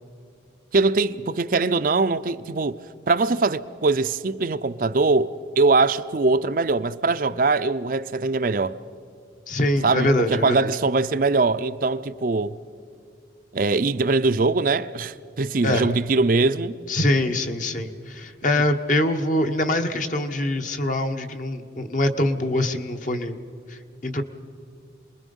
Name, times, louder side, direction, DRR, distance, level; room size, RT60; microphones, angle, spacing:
voice 1, 0.7-2.8 3.1-8.8 9.8-12.5 13.5-16.8, right 3 dB, 50° right, 0.5 m, -22 dB
voice 2, 9.5-10.7 15.6-15.9 16.9-23.4 23.7-24.2, left 1 dB, 45° left, 1.1 m, -24 dB
27.5 x 21.0 x 5.4 m
head